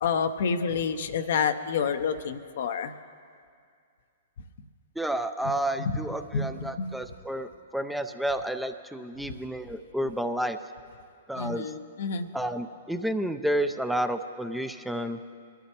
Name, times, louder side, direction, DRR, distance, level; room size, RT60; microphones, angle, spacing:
voice 1, 0.0-2.9 5.9-6.0 6.3-6.9 11.3-12.3, left 6 dB, 65° left, 9 dB, 0.7 m, -28 dB
voice 2, 5.0-10.6 11.3-11.7 12.3-15.2, right 1 dB, ahead, 8 dB, 0.5 m, -30 dB
22.5 x 12.5 x 2.9 m, 2.2 s
hypercardioid pair, 120°, 0 cm